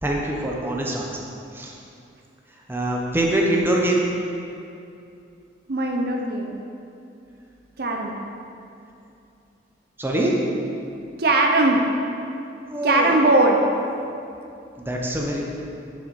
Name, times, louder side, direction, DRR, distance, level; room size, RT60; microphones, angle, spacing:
voice 1, 0.0-1.1 1.5-1.7 2.7-4.0 10.0-10.3 12.7-13.1 14.8-15.4, right 1 dB, 15° right, -2 dB, 0.9 m, -23 dB
voice 2, 5.7-6.6 7.8-8.1 11.2-11.9 12.8-13.6, right 2 dB, 60° right, 2 dB, 0.7 m, -19 dB
10.0 x 6.3 x 4.2 m, 2.6 s
head